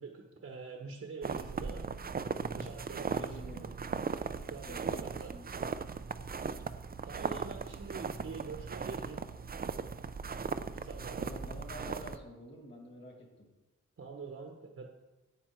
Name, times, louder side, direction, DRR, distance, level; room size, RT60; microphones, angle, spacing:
voice 1, 0.0-1.8 2.5-3.6 4.5-5.3 7.0-9.2 10.7-11.3 14.0-14.9, right 4 dB, 50° right, 2 dB, 1.1 m, -45 dB
sound 1, 1.2-12.2, right 5 dB, 30° right, 0.4 m, -38 dB
voice 2, 3.0-3.7 4.6-5.6 11.2-13.5, equal, 35° left, 1 dB, 2.2 m, -48 dB
9.5 x 8.7 x 4.5 m, 1.1 s
wide cardioid pair, 150°, 31 cm